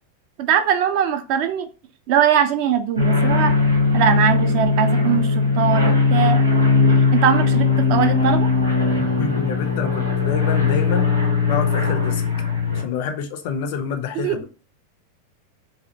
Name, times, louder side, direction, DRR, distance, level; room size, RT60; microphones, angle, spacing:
voice 1, 0.4-1.7 2.1-3.5 3.9-6.5 7.1-8.5 14.2-14.4, right 9 dB, 45° right, 0.3 m, -21 dB
sound 1, 3.0-12.8, left 4 dB, 85° right, 0.6 m, -19 dB
voice 2, 9.0-11.1 11.4-12.2 12.7-14.5, left 7 dB, 50° left, 0.4 m, -27 dB
2.4 x 2.0 x 2.7 m
figure-of-eight pair, 90°, 0 cm